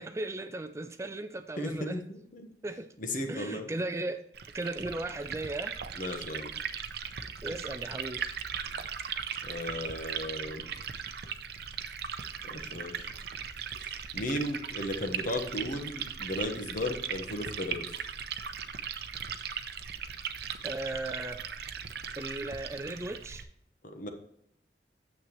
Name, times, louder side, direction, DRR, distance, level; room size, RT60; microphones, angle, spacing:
voice 1, 0.0-2.0 2.6-2.9 3.3-4.2 4.5-5.8 7.4-8.2 20.6-21.4 22.2-23.5, right 2 dB, 15° right, 0.4 m, -36 dB
voice 2, 1.6-2.5 3.0-3.7 6.0-6.5 9.4-10.7 12.4-13.1 13.8-18.0 23.8-24.1, left 1 dB, 50° left, 1.2 m, -35 dB
Liquid, 4.3-23.4, right 7 dB, 65° right, 0.7 m, -38 dB
9.4 x 7.3 x 3.1 m
head